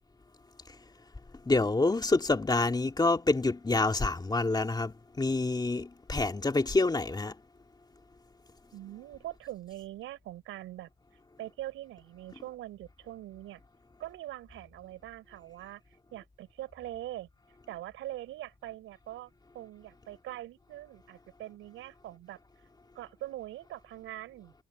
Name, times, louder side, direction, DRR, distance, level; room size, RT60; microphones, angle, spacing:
voice 1, 1.4-7.3, left 3 dB, 20° left, 2.6 m, -27 dB
voice 2, 8.7-10.9 11.4-13.6 14.0-17.3 17.7-22.4 22.9-24.5, right 14 dB, 90° right, 5.5 m, -43 dB
cardioid pair, 90°, 20 cm